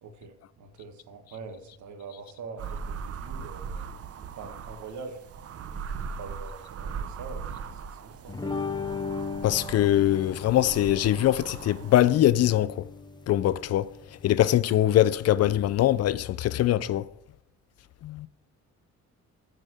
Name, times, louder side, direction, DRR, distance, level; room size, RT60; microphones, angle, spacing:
voice 1, 0.0-3.9 4.3-5.2 6.2-8.4, right 4 dB, 70° right, 1.5 m, -44 dB
sound 1, 2.6-12.2, right 6 dB, 50° right, 0.7 m, -39 dB
sound 2, 8.3-16.0, left 4 dB, 15° left, 0.8 m, -38 dB
voice 2, 9.4-12.9 13.3-13.9 14.2-17.1 18.0-18.3, left 13 dB, 55° left, 0.4 m, -22 dB
6.4 x 5.1 x 6.2 m
cardioid pair, 90°, 30 cm